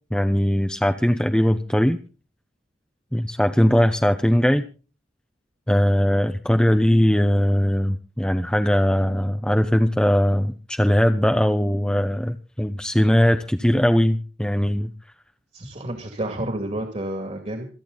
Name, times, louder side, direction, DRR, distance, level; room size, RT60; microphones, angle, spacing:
voice 1, 0.1-2.0 3.1-4.6 5.7-14.9, equal, 5° left, 6 dB, 0.8 m, -20 dB
voice 2, 15.5-17.7, right 1 dB, 40° right, 4 dB, 2.5 m, -30 dB
27.5 x 9.2 x 4.0 m, 0.35 s
head